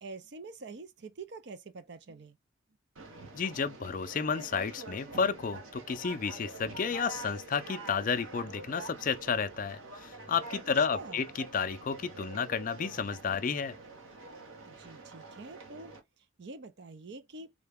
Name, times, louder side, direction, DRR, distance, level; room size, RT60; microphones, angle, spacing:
voice 1, 0.0-2.4 10.5-11.3 14.6-17.5, right 3 dB, 55° right, 0.5 m, -46 dB
Conversation, 3.0-16.0, right 3 dB, 90° right, 1.0 m, -46 dB
voice 2, 3.3-13.8, left 6 dB, 40° left, 0.4 m, -32 dB
3.8 x 2.2 x 3.4 m
head